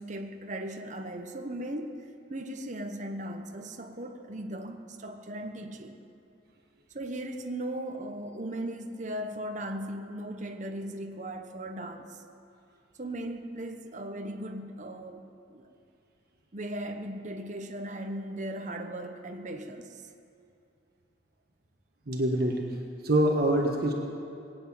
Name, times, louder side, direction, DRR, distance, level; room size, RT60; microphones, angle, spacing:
voice 1, 0.0-6.0 6.9-12.2 13.0-15.2 15.5-15.7 16.5-20.0, right 1 dB, 45° right, 5 dB, 1.1 m, -37 dB
voice 2, 22.1-22.6 23.0-23.9, right 1 dB, 60° right, 1 dB, 1.4 m, -25 dB
20.0 x 8.0 x 8.9 m, 2.7 s
head